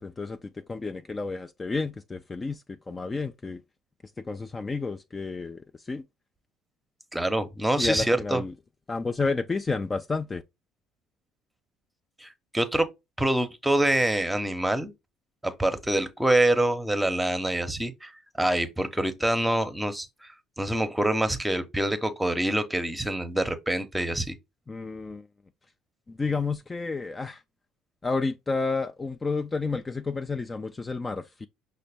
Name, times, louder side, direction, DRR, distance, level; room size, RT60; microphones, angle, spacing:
voice 1, 0.0-3.6 4.2-6.0 7.8-8.5 8.9-10.4 24.7-25.3 26.1-27.4 28.0-31.5, left 4 dB, 25° left, 0.3 m, -31 dB
voice 2, 7.1-8.4 12.2-12.9 13.2-14.9 15.4-18.1 18.4-20.3 20.6-24.3, right 1 dB, 10° right, 0.8 m, -26 dB
5.6 x 2.1 x 3.4 m
hypercardioid pair, 65°, 0 cm